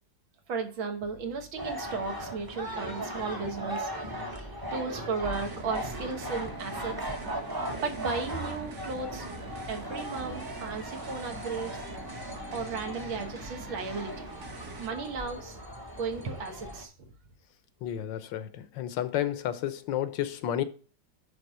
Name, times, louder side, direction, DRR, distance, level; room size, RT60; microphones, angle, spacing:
voice 1, 0.5-3.9 4.6-7.0 7.7-9.3 9.7-11.8 12.5-14.2 14.8-15.6 15.9-17.1, right 4 dB, 85° right, 2.1 m, -35 dB
sound 1, 1.6-16.8, equal, 15° right, 0.7 m, -38 dB
sound 2, 5.2-14.9, right 3 dB, 50° right, 1.5 m, -44 dB
voice 2, 17.8-20.6, left 11 dB, 75° left, 1.3 m, -31 dB
10.5 x 3.6 x 5.5 m
omnidirectional pair, 2.1 m